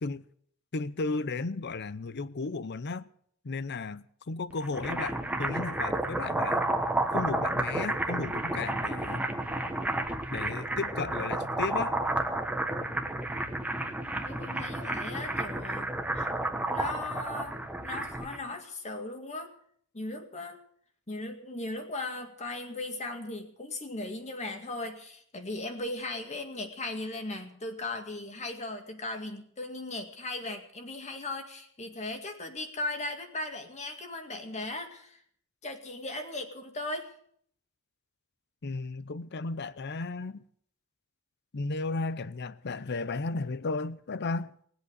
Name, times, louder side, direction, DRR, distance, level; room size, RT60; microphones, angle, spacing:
voice 1, 0.7-3.0 3.4-6.6 7.1-9.2 10.3-12.0 38.6-40.4 41.5-44.5, left 3 dB, 50° left, 0.6 m, -34 dB
sound 1, 4.5-18.4, right 1 dB, 5° right, 1.2 m, -31 dB
voice 2, 14.3-15.9 16.1-16.3 16.7-17.6 17.8-19.5 19.9-20.6 21.1-35.2 35.6-37.1, left 2 dB, 30° left, 2.1 m, -37 dB
19.5 x 8.1 x 8.1 m
head